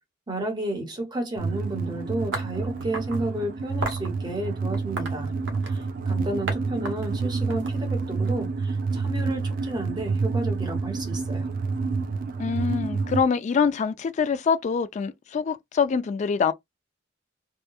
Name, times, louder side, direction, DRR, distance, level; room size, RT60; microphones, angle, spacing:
voice 1, 0.3-5.3 5.7-11.5, right 1 dB, 25° right, 1.0 m, -32 dB
sound 1, 1.4-13.2, right 4 dB, 50° right, 0.4 m, -28 dB
sound 2, 2.3-3.2 3.8-4.1 4.7-5.9 6.5-6.6 6.8-8.3, right 2 dB, 80° right, 0.9 m, -34 dB
voice 2, 12.4-16.5, left 6 dB, 40° left, 0.3 m, -25 dB
2.8 x 2.2 x 2.2 m
head